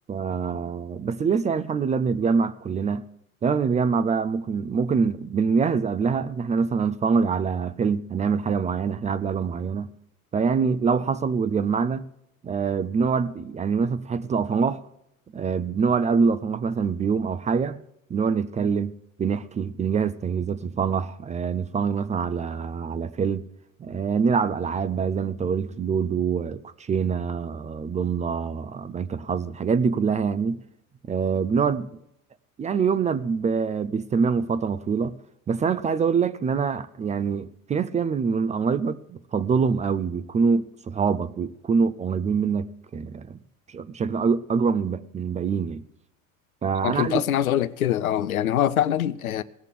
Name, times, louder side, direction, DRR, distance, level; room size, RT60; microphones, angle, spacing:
voice 1, 0.1-3.0 3.4-9.9 10.3-12.1 12.4-14.8 15.3-17.8 18.1-23.5 23.8-30.6 31.1-31.9 32.6-35.2 35.5-43.4 43.7-45.9 46.6-47.2, right 5 dB, 20° right, 0.4 m, -25 dB
voice 2, 46.8-49.4, left 11 dB, 85° left, 0.7 m, -24 dB
17.5 x 6.6 x 7.4 m
hypercardioid pair, 80°, 41 cm